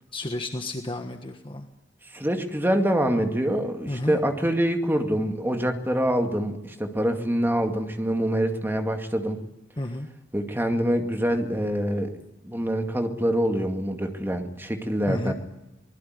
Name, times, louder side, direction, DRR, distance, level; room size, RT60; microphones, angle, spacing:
voice 1, 0.1-1.6 3.9-4.2 9.8-10.1 15.1-15.3, left 1 dB, 25° left, 5 dB, 1.4 m, -31 dB
voice 2, 2.1-9.4 10.3-12.2 12.4-15.3, equal, 10° right, 4 dB, 2.3 m, -25 dB
24.5 x 20.5 x 9.6 m, 0.95 s
head